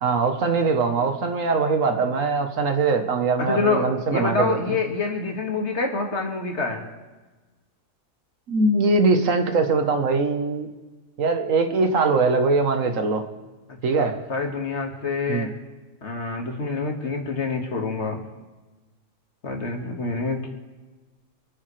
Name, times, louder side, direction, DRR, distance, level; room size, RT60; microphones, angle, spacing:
voice 1, 0.0-4.8 8.5-10.7 11.2-13.2 13.8-14.2 15.3-15.5, right 3 dB, 70° right, 6 dB, 1.5 m, -22 dB
voice 2, 3.4-6.8 13.7-15.5 16.0-18.2 19.4-20.5, left 4 dB, 55° left, 2 dB, 2.1 m, -27 dB
26.5 x 9.9 x 3.3 m, 1.2 s
omnidirectional pair, 1.4 m